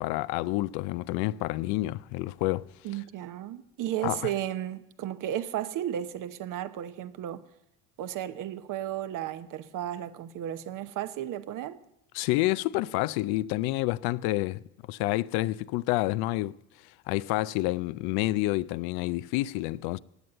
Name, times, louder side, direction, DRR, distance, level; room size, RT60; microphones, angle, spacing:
voice 1, 0.0-2.7 4.0-4.3 12.1-14.6 14.9-16.6 17.1-20.0, left 18 dB, 75° left, 0.5 m, -28 dB
voice 2, 2.8-7.5 8.0-11.8, right 11 dB, 60° right, 1.0 m, -34 dB
16.0 x 9.4 x 7.8 m
supercardioid pair, 95°, 37 cm